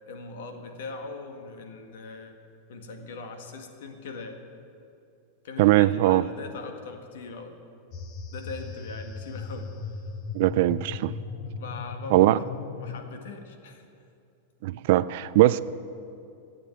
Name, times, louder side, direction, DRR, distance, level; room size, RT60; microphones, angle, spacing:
voice 1, 0.1-2.3 2.7-4.4 5.4-7.5 8.3-9.8 11.5-12.4 12.8-13.9, left 4 dB, 65° left, 5 dB, 1.7 m, -40 dB
voice 2, 5.6-6.2 10.3-11.1 12.1-12.4 14.6-15.6, right 16 dB, 45° right, 17 dB, 0.3 m, -20 dB
sound 1, 7.9-13.0, left 4 dB, 30° left, 0.8 m, -37 dB
14.5 x 8.5 x 9.2 m, 2.6 s
supercardioid pair, 180°, 0 cm